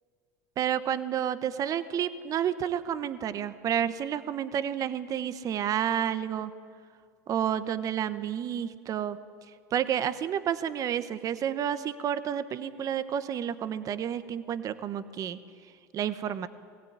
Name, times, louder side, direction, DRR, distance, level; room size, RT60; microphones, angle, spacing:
voice 1, 0.6-6.5 7.3-9.2 9.7-15.4 15.9-16.5, right 9 dB, 45° right, 13 dB, 1.0 m, -30 dB
19.5 x 15.5 x 9.5 m, 2.2 s
hypercardioid pair, 90°, 9 cm